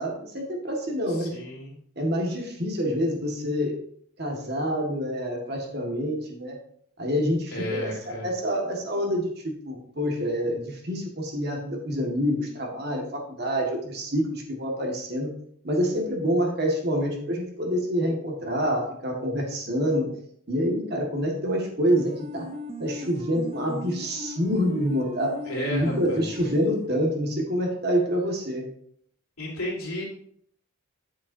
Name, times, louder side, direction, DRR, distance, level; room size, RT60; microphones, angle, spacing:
voice 1, 0.0-1.4 2.0-3.8 4.2-6.6 7.0-15.3 15.6-20.1 20.5-22.5 22.8-25.4 25.7-28.7, equal, 50° right, 1 dB, 1.8 m, -27 dB
voice 2, 1.1-1.7 7.5-8.3 25.5-26.3 29.4-30.0, equal, 90° left, -4 dB, 3.4 m, -33 dB
sound 1, 21.8-27.1, left 1 dB, 30° right, 0.6 m, -38 dB
9.5 x 7.0 x 2.7 m, 0.66 s
head